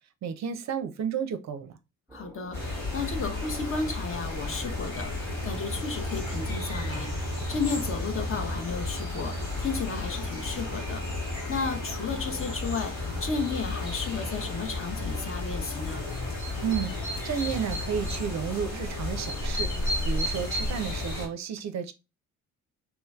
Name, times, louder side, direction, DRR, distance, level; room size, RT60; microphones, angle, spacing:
voice 1, 0.2-1.7 16.6-19.7 20.0-21.9, right 7 dB, 50° right, 0.5 m, -32 dB
voice 2, 2.1-7.1 7.5-11.1 11.5-16.0, left 4 dB, 35° left, 0.8 m, -33 dB
sound 1, 2.1-10.9, right 1 dB, 5° right, 0.5 m, -50 dB
sound 2, 2.5-21.3, left 2 dB, 80° left, 1.9 m, -32 dB
3.1 x 3.0 x 2.3 m
hypercardioid pair, 45°, 37 cm